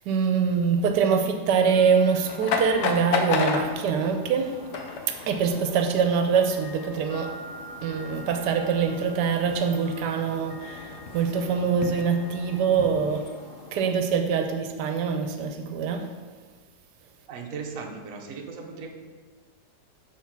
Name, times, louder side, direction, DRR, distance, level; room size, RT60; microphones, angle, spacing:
voice 1, 0.1-4.6 5.1-7.3 7.8-13.3 13.7-16.1, right 6 dB, 90° right, 6 dB, 1.2 m, -24 dB
sound 1, 1.6-13.9, left 2 dB, 50° left, 0.7 m, -44 dB
sound 2, 2.1-13.3, left 5 dB, 80° left, 1.3 m, -34 dB
voice 2, 17.3-18.9, right 5 dB, 60° right, 2 dB, 1.1 m, -37 dB
7.5 x 3.5 x 5.9 m, 1.4 s
omnidirectional pair, 1.8 m